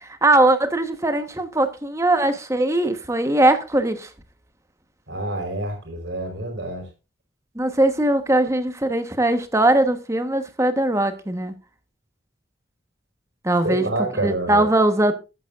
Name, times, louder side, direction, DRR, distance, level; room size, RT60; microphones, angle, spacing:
voice 1, 0.0-4.1 7.5-11.5 13.4-13.9 14.2-15.1, right 1 dB, 15° right, 1.1 m, -20 dB
voice 2, 5.1-6.8 13.6-14.7, right 2 dB, 75° right, 4.8 m, -27 dB
13.5 x 9.9 x 2.5 m
head